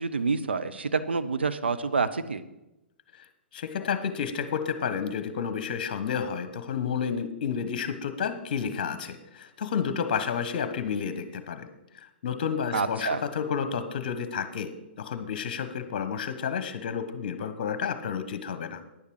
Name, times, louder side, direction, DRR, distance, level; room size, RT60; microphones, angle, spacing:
voice 1, 0.0-2.4 12.7-13.2, right 4 dB, 65° right, 10 dB, 0.8 m, -28 dB
voice 2, 3.5-11.7 11.9-14.7 15.0-18.8, left 7 dB, 45° left, 10 dB, 1.2 m, -31 dB
10.0 x 10.0 x 4.8 m, 0.94 s
figure-of-eight pair, 120°, 6 cm